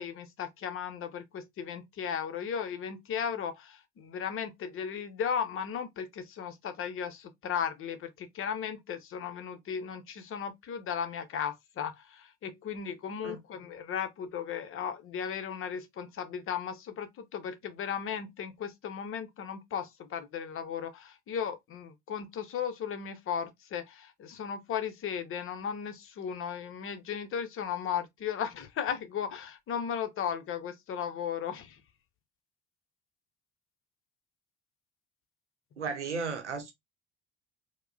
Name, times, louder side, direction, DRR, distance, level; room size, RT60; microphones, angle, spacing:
voice 1, 0.0-31.8, left 7 dB, 40° left, 0.8 m, -36 dB
voice 2, 35.8-36.7, right 5 dB, 85° right, 0.7 m, -34 dB
4.5 x 2.2 x 2.4 m
figure-of-eight pair, 55°, 34 cm